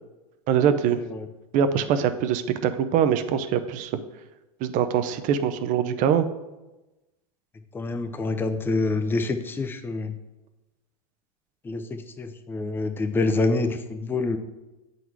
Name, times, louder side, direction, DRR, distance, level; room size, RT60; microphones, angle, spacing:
voice 1, 0.5-1.0 1.5-4.0 4.6-6.3, right 8 dB, 40° right, 10 dB, 0.6 m, -23 dB
voice 2, 7.7-10.1 11.6-14.4, left 3 dB, 10° left, 7 dB, 0.5 m, -27 dB
7.9 x 4.0 x 4.6 m, 1.0 s
hypercardioid pair, 110°, 20 cm